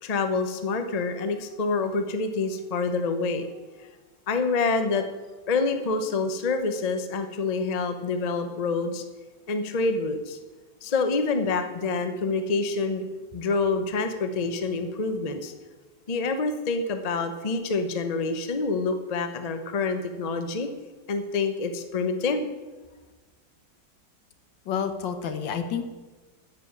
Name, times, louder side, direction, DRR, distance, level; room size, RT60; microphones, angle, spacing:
voice 1, 0.0-3.5 3.8-3.9 4.3-5.0 5.5-9.0 9.5-10.4 10.8-13.0 13.3-15.5 16.1-20.7 21.1-22.5, left 4 dB, 35° left, 7 dB, 0.6 m, -27 dB
voice 2, 24.6-25.8, left 7 dB, 80° left, 8 dB, 1.7 m, -29 dB
9.6 x 7.5 x 8.3 m, 1.3 s
omnidirectional pair, 2.0 m